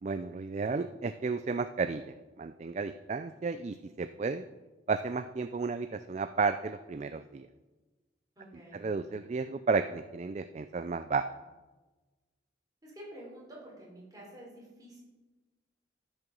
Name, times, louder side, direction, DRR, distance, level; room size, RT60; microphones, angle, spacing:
voice 1, 0.0-4.5 4.9-7.5 8.7-11.3, right 4 dB, 40° right, 11 dB, 0.3 m, -33 dB
voice 2, 8.4-8.8 12.8-15.0, right 1 dB, 20° right, -4 dB, 4.2 m, -49 dB
12.5 x 6.6 x 6.2 m, 1.2 s
head